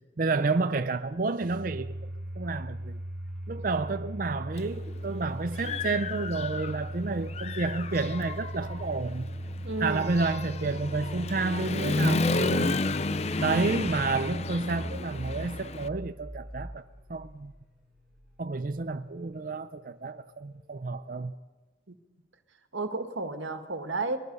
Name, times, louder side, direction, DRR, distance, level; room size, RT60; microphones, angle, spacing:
voice 1, 0.0-1.9 2.4-3.0 3.5-9.3 9.8-12.8 13.4-16.8 17.1-17.5 18.4-21.3, right 3 dB, 45° right, 0.5 m, -30 dB
Domestic sounds home sounds, 1.4-18.3, right 1 dB, ahead, 7.0 m, -38 dB
Human voice / Motorcycle, 4.6-4.7 5.2-6.9 7.3-15.9, left 3 dB, 35° left, 0.5 m, -32 dB
voice 2, 9.6-10.1 21.9-22.0 22.7-24.2, right 3 dB, 90° right, 1.8 m, -32 dB
23.5 x 20.5 x 5.4 m
head